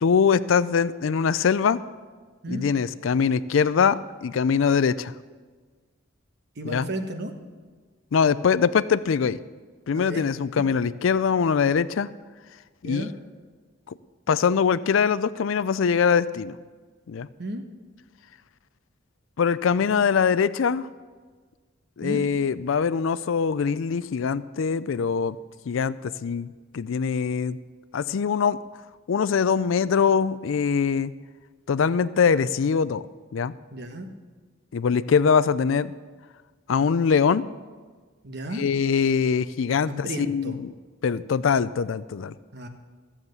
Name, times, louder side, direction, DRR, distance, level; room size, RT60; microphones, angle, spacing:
voice 1, 0.0-1.8 2.5-5.1 6.6-6.9 8.1-9.4 9.9-12.1 12.8-13.0 14.3-16.6 17.1-17.3 19.4-20.9 22.0-25.4 25.7-27.6 27.9-28.6 29.1-31.1 31.7-33.0 33.3-33.5 34.7-35.9 36.7-37.5 38.5-40.6 41.0-42.3, left 6 dB, 70° left, 16 dB, 0.4 m, -23 dB
voice 2, 6.6-7.3 9.9-10.3 12.8-13.1 17.4-17.6 19.8-20.0 22.0-22.3 33.7-34.1 38.2-38.7 39.9-40.5 42.5-42.7, right 1 dB, 55° right, 5 dB, 1.3 m, -33 dB
14.5 x 7.3 x 8.0 m, 1.4 s
head